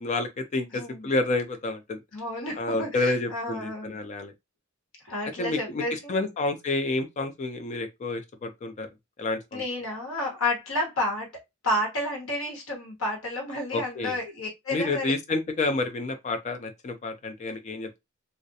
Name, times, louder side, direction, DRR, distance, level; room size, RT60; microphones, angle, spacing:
voice 1, 0.0-2.0 2.6-4.3 5.4-8.9 9.2-9.6 13.7-14.2 14.7-18.0, left 2 dB, 35° left, 0.3 m, -29 dB
voice 2, 0.7-1.1 2.1-4.0 5.0-6.2 9.5-11.3 11.6-15.1, left 1 dB, 75° left, 1.1 m, -31 dB
2.3 x 2.0 x 2.7 m
head